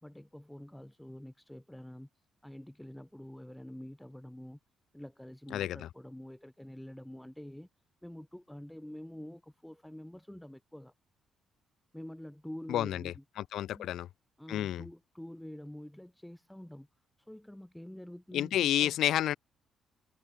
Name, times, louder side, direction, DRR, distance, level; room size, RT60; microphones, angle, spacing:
voice 1, 0.0-2.1 2.4-4.6 4.9-7.7 8.0-10.9 11.9-13.2 13.7-13.9 14.4-16.9 17.2-19.0, left 1 dB, 5° left, 0.7 m, -47 dB
voice 2, 5.5-5.9 12.7-14.1 14.5-14.8 18.3-19.4, left 12 dB, 75° left, 0.5 m, -30 dB
cardioid pair, 90°, 0 cm